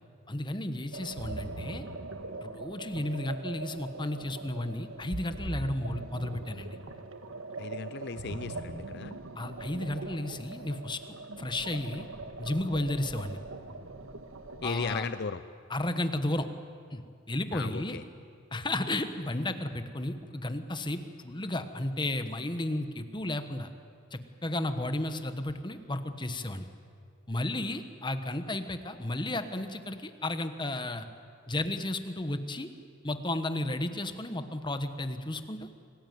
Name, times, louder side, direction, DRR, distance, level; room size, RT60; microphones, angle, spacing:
voice 1, 0.3-1.8 2.4-6.8 9.3-11.0 11.4-12.1 12.4-13.4 14.6-15.1 15.7-16.5 16.9-17.0 17.3-18.0 18.5-23.7 24.1-26.7 27.3-31.1 31.5-32.7 33.0-35.7, left 1 dB, 25° left, 9 dB, 1.3 m, -33 dB
sound 1, 0.9-15.0, right 2 dB, 90° right, 1.6 m, -41 dB
voice 2, 7.6-9.2 14.6-15.4 17.5-18.0, left 5 dB, 55° left, 12 dB, 0.6 m, -36 dB
27.0 x 18.0 x 9.5 m, 2.3 s
head